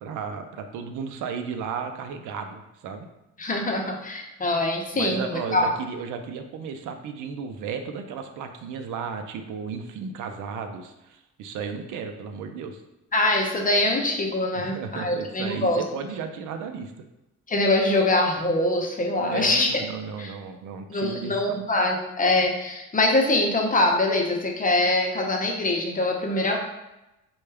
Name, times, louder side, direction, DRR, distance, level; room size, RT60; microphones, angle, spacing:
voice 1, 0.0-3.1 4.9-12.8 14.5-16.9 19.2-21.6, right 6 dB, 80° right, 7 dB, 0.5 m, -34 dB
voice 2, 3.4-5.7 13.1-15.8 17.5-19.7 20.2-20.3 20.9-26.6, left 2 dB, 25° left, 1 dB, 0.7 m, -23 dB
4.3 x 2.3 x 3.3 m, 0.94 s
cardioid pair, 90°, 30 cm